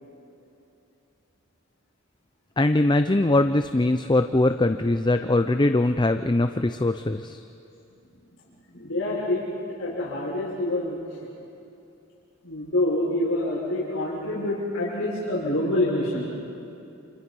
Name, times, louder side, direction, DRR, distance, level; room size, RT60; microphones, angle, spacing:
voice 1, 2.6-7.4, left 2 dB, 20° left, 8 dB, 0.6 m, -22 dB
voice 2, 8.7-9.4 9.8-11.2 12.4-16.3, left 1 dB, 70° left, -7 dB, 6.0 m, -26 dB
29.5 x 28.0 x 5.5 m, 2.8 s
head